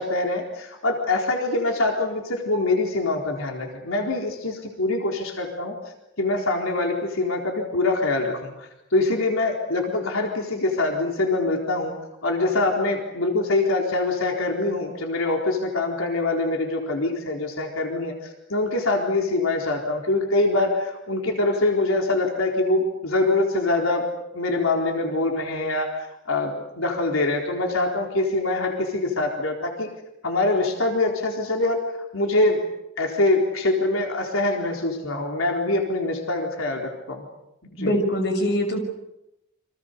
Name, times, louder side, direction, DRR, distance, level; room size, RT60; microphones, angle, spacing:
voice 1, 0.0-5.7 6.2-11.9 12.2-24.1 24.3-29.9 30.2-31.8 32.1-32.6 33.0-37.2 37.7-37.9, left 2 dB, 90° left, 1 dB, 4.1 m, -24 dB
voice 2, 37.8-38.8, equal, 55° left, 5 dB, 6.1 m, -23 dB
30.0 x 25.5 x 6.8 m, 0.87 s
head